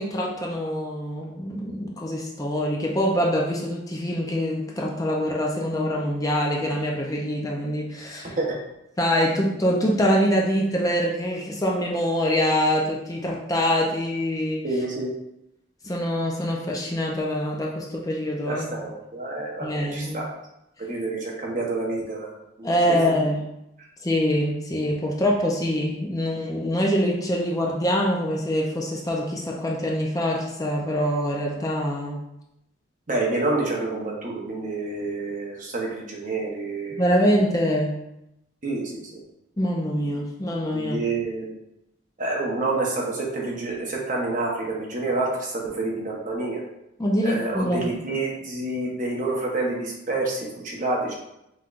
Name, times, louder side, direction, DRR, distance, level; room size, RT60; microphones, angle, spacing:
voice 1, 0.0-8.3 9.0-14.6 15.8-18.7 19.6-20.2 22.6-23.4 24.0-32.2 36.9-37.9 39.6-41.0 47.0-47.9, equal, 20° left, -2 dB, 0.5 m, -24 dB
voice 2, 14.6-15.1 18.5-20.3 20.8-23.2 33.1-37.0 38.6-39.2 40.7-41.5 42.2-46.6 47.2-51.1, right 2 dB, 40° right, -2 dB, 1.0 m, -28 dB
5.6 x 3.2 x 2.5 m, 0.84 s
head